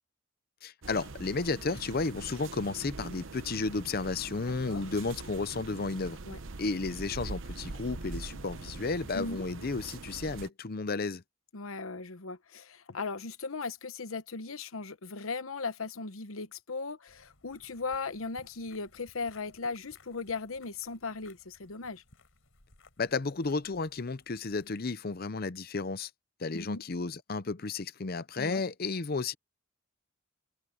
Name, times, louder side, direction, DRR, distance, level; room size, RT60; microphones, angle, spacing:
voice 1, 0.6-6.2 6.6-11.2 23.0-26.1 26.4-29.3, left 3 dB, 45° left, 0.7 m, -33 dB
sound 1, 0.8-10.5, right 3 dB, 70° right, 0.9 m, -43 dB
voice 2, 11.5-22.0 26.5-26.8 28.3-28.6, left 4 dB, 90° left, 1.0 m, -38 dB
sound 2, 17.1-24.8, left 2 dB, 75° left, 4.5 m, -62 dB
open air
head